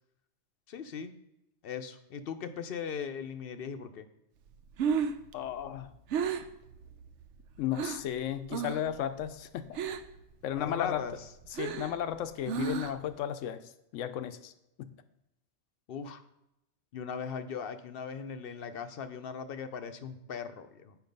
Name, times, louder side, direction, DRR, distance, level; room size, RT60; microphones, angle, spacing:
voice 1, 0.7-1.1 1.6-4.1 10.6-11.3 15.9-16.2 16.9-21.0, left 6 dB, 60° left, 9 dB, 0.7 m, -39 dB
Breathing, 4.5-8.1 8.5-9.0 9.2-10.2 10.6-13.1, right 6 dB, 75° right, 0.9 m, -34 dB
voice 2, 5.3-5.9 7.6-9.8 10.4-11.0 11.6-13.6 13.9-14.5 14.8-14.9, left 10 dB, 90° left, 11 dB, 1.0 m, -34 dB
8.2 x 4.7 x 5.2 m, 0.86 s
omnidirectional pair, 1.3 m